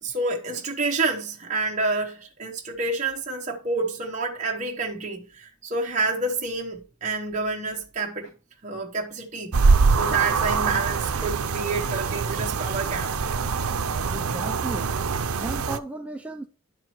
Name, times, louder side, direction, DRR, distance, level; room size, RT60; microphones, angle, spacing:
voice 1, 0.0-8.3 8.6-9.6 10.0-13.3, right 3 dB, 35° right, 1.0 m, -28 dB
sound 1, 9.5-15.8, right 4 dB, 85° right, 0.7 m, -24 dB
voice 2, 14.1-14.9 15.4-16.5, right 1 dB, 5° right, 0.7 m, -34 dB
11.0 x 4.8 x 4.5 m
head